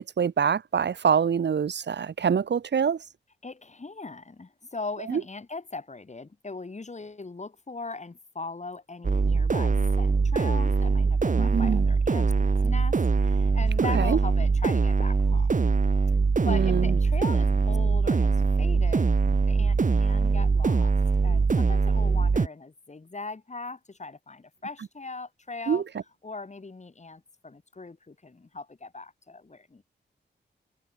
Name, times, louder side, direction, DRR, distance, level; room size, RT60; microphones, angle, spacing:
voice 1, 0.0-3.0 5.1-5.2 11.4-11.8 13.9-14.2 16.5-16.9 25.7-25.8, right 7 dB, 70° right, 1.7 m, -25 dB
voice 2, 3.4-15.7 16.4-19.2 19.5-20.9 21.2-25.8 26.2-29.8, left 3 dB, 40° left, 7.8 m, -40 dB
sound 1, 9.0-22.5, right 4 dB, 45° right, 1.5 m, -23 dB
cardioid pair, 65°, 19 cm